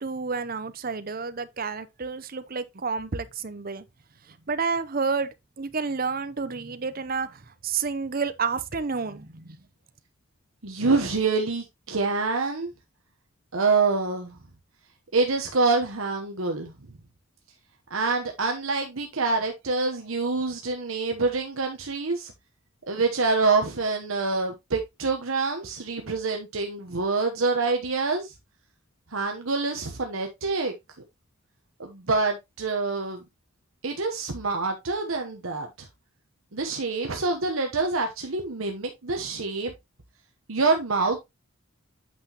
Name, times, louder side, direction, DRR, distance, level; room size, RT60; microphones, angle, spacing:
voice 1, 0.0-3.8 4.3-9.6, right 5 dB, 40° right, 0.7 m, -30 dB
voice 2, 10.6-12.7 13.5-14.4 15.1-16.7 17.9-22.3 22.9-28.3 29.1-30.7 31.8-33.2 33.8-35.9 36.5-39.7 40.5-41.2, right 3 dB, 70° right, 1.1 m, -26 dB
8.7 x 5.9 x 3.0 m
head